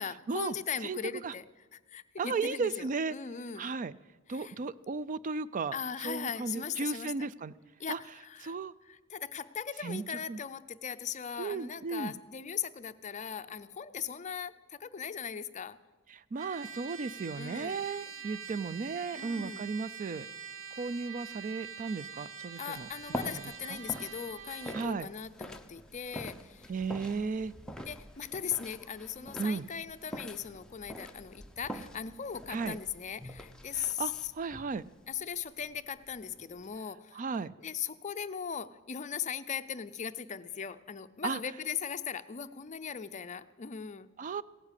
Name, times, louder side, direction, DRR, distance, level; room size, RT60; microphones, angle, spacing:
voice 1, 0.0-1.4 1.7-3.7 4.3-4.5 5.7-7.1 7.8-8.6 8.9-15.8 17.4-17.8 19.2-19.7 22.6-26.7 27.9-34.3 35.1-37.2 37.6-44.1, left 7 dB, 35° left, 12 dB, 0.5 m, -39 dB
voice 2, 2.2-3.1 3.6-3.9 4.3-5.7 6.0-7.5 7.9-8.0 8.4-8.7 9.8-10.0 10.3-10.4 11.4-12.1 16.1-20.3 20.8-22.9 23.2-23.3 23.7-23.8 24.7-25.1 26.7-27.5 29.4-29.7 32.5-32.8 33.7-34.8 37.1-37.5 41.2-41.4 44.2-44.4, right 4 dB, 40° right, 17 dB, 0.4 m, -35 dB
Trumpet, 16.4-24.9, right 7 dB, 65° right, 1.3 m, -45 dB
sound 1, 22.7-36.8, equal, 5° left, 0.7 m, -46 dB
16.5 x 9.8 x 8.2 m, 1.2 s
head